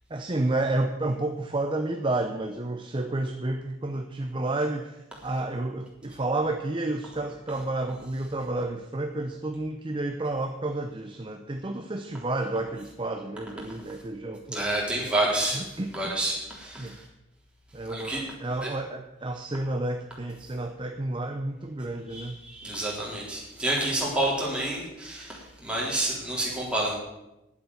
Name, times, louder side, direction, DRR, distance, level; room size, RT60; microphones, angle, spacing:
voice 1, 0.1-14.6 15.5-16.2 16.8-17.0 17.7-22.4, right 2 dB, 25° right, 6 dB, 0.6 m, -30 dB
voice 2, 14.5-15.6 15.9-17.1 17.9-18.2 18.6-18.7 22.1-26.9, right 1 dB, 5° right, -4 dB, 3.7 m, -29 dB
9.8 x 7.9 x 9.4 m, 0.96 s
head